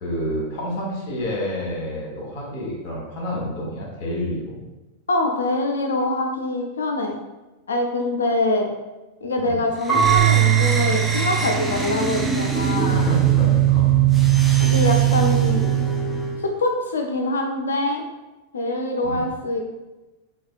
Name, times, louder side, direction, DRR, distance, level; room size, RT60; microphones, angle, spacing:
voice 1, 0.0-4.6 9.4-9.6 12.9-14.0 14.4-14.5 15.5-15.7 19.0-19.3, equal, 45° left, -3 dB, 1.3 m, -28 dB
voice 2, 5.1-7.2 7.7-8.7 9.2-13.1 14.6-15.7 16.4-18.0 18.5-19.8, left 2 dB, 70° left, 3 dB, 0.5 m, -24 dB
sound 1, 9.8-16.5, right 10 dB, 5° right, 0.4 m, -20 dB
Marimba xylophone / Wood, 9.9-12.7, right 11 dB, 10° left, 1.3 m, -21 dB
4.8 x 2.4 x 2.5 m, 1.1 s
figure-of-eight pair, 90°, 0 cm